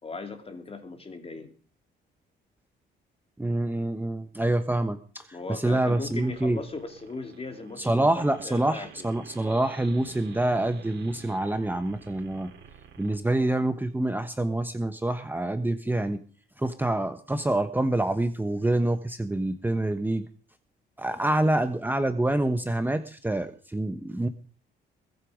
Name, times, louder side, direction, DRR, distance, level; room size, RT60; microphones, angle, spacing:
voice 1, 0.0-1.5 5.3-9.1 21.1-21.2, left 3 dB, 30° left, 5 dB, 3.1 m, -38 dB
voice 2, 3.4-5.0 5.5-6.6 7.8-12.5 13.0-16.2 16.6-20.2 21.0-24.3, right 1 dB, 10° right, 8 dB, 1.1 m, -26 dB
sound 1, 6.0-13.2, right 7 dB, 65° right, 3.5 m, -50 dB
21.5 x 8.5 x 5.1 m, 0.42 s
cardioid pair, 90°, 20 cm